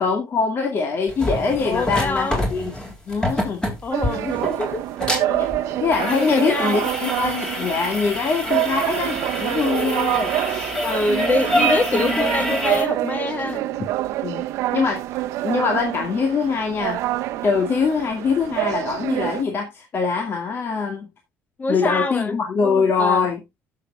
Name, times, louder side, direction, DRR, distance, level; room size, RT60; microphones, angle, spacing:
voice 1, 0.0-2.7 3.1-3.7 5.3-10.4 13.8-13.9 14.2-14.4 14.7-15.0 15.4-17.0 17.4-21.1 21.7-23.4, left 5 dB, 50° left, 2.0 m, -23 dB
sound 1, 1.1-12.8, equal, 15° left, 3.4 m, -26 dB
voice 2, 1.6-2.4 3.8-4.8 5.2-5.4 6.1-6.8 8.4-8.8 10.8-13.7 21.6-23.3, left 3 dB, 35° left, 1.4 m, -26 dB
sound 2, 3.9-19.4, right 14 dB, 80° right, 0.8 m, -26 dB
15.5 x 6.6 x 2.4 m
cardioid pair, 90°, 5 cm